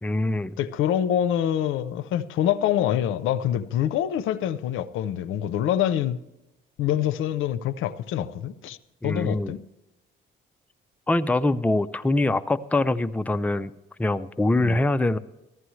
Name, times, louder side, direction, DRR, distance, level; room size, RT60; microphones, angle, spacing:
voice 1, 0.0-0.6 9.0-9.6 11.1-13.7 14.0-15.2, left 2 dB, 5° left, 0.5 m, -24 dB
voice 2, 0.6-6.2 6.8-8.8 9.0-9.6 14.6-14.8, left 10 dB, 90° left, 0.6 m, -25 dB
14.5 x 12.5 x 3.2 m
cardioid pair, 90°, 20 cm